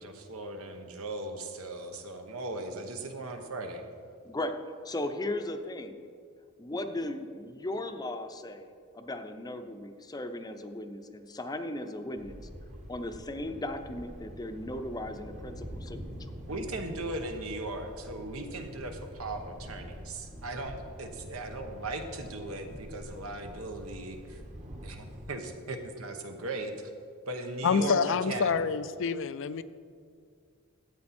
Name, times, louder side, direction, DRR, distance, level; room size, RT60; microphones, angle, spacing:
voice 1, 0.0-3.9 16.5-24.4 24.8-26.7 27.3-28.6, right 2 dB, 80° right, 5 dB, 1.1 m, -38 dB
voice 2, 4.8-6.0 6.6-12.4 12.9-16.3, left 1 dB, 20° left, 7 dB, 0.6 m, -37 dB
Thunder, 12.1-25.3, equal, 35° right, 1.1 m, -45 dB
voice 3, 27.6-29.6, left 5 dB, 65° left, 13 dB, 0.4 m, -27 dB
13.0 x 8.3 x 4.3 m, 2.2 s
head